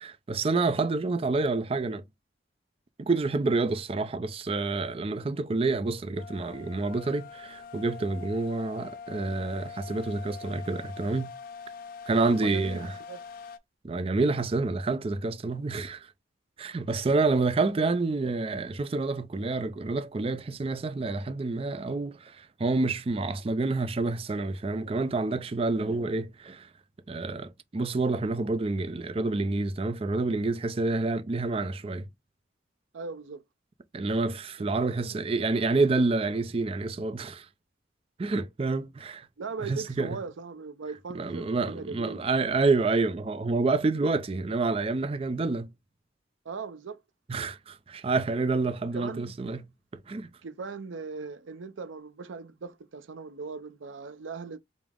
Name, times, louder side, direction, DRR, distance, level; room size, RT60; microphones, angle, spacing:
voice 1, 0.0-2.0 3.0-11.3 12.1-12.9 13.8-16.1 16.6-26.7 27.1-32.1 33.9-37.5 38.2-39.3 39.6-40.2 41.1-45.7 47.3-49.6 49.9-50.3, right 3 dB, 30° right, 0.4 m, -28 dB
sound 1, 6.2-13.6, left 5 dB, 50° left, 0.4 m, -43 dB
voice 2, 12.3-13.2 16.6-16.8 32.9-33.4 34.6-35.2 39.4-42.2 46.4-47.0 48.9-49.3 50.4-54.6, right 4 dB, 85° right, 0.5 m, -39 dB
5.0 x 2.0 x 3.5 m
head